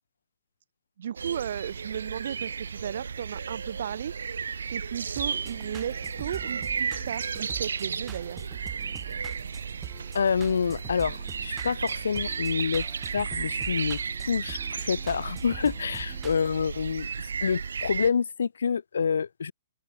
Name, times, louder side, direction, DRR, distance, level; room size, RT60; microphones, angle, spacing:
voice 1, 1.0-8.4, right 9 dB, 65° right, 4.3 m, -35 dB
sound 1, 1.2-18.1, right 6 dB, 90° right, 1.5 m, -34 dB
sound 2, 5.0-16.5, right 9 dB, 15° right, 3.0 m, -45 dB
voice 2, 10.1-12.8 13.1-14.0 14.3-17.1 17.4-19.5, left 6 dB, 85° left, 0.7 m, -27 dB
hypercardioid pair, 150°, 0 cm